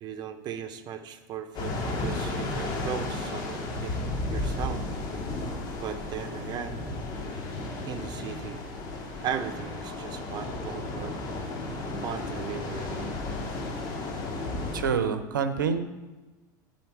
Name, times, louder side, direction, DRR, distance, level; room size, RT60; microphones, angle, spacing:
voice 1, 0.0-3.9 4.3-4.8 5.8-6.8 7.9-8.6 9.2-11.2 12.0-13.1, right 8 dB, 45° right, 8 dB, 0.8 m, -37 dB
sound 1, 1.5-14.9, left 2 dB, 45° left, 2.0 m, -33 dB
voice 2, 14.7-15.8, right 6 dB, 85° right, 9 dB, 0.7 m, -26 dB
11.0 x 4.3 x 4.7 m, 1.2 s
hypercardioid pair, 85°, 10 cm